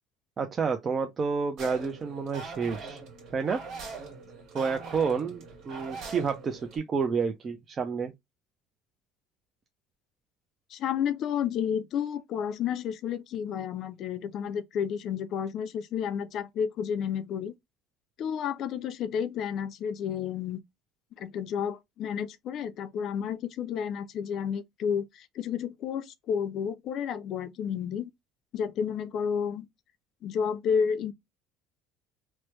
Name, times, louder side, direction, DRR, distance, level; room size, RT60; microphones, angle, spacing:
voice 1, 0.4-3.0 3.3-3.6 4.5-8.1, right 5 dB, 30° right, 0.5 m, -29 dB
sound 1, 1.6-6.8, right 4 dB, 60° right, 1.6 m, -42 dB
voice 2, 10.7-17.5 18.2-20.6 21.2-28.1 28.5-29.7 30.2-31.1, left 7 dB, 55° left, 0.4 m, -31 dB
3.1 x 2.1 x 3.1 m
supercardioid pair, 110°, 0 cm